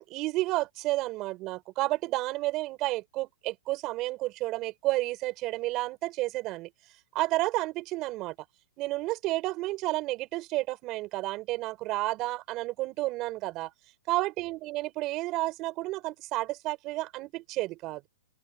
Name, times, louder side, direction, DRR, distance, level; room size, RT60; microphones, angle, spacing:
voice 1, 0.0-6.7 7.1-8.3 8.8-13.7 14.1-18.0, right 19 dB, 35° right, 4.0 m, -31 dB
hypercardioid pair, 140°, 0 cm